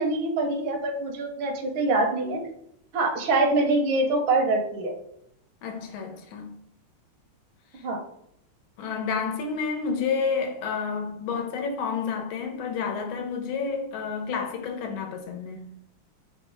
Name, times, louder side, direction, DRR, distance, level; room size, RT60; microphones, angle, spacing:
voice 1, 0.0-2.4 2.9-5.0 7.8-8.0, right 2 dB, 80° right, 1.6 m, -24 dB
voice 2, 5.6-6.5 8.8-15.7, left 5 dB, 90° left, 1.5 m, -30 dB
4.0 x 2.1 x 4.5 m
omnidirectional pair, 2.2 m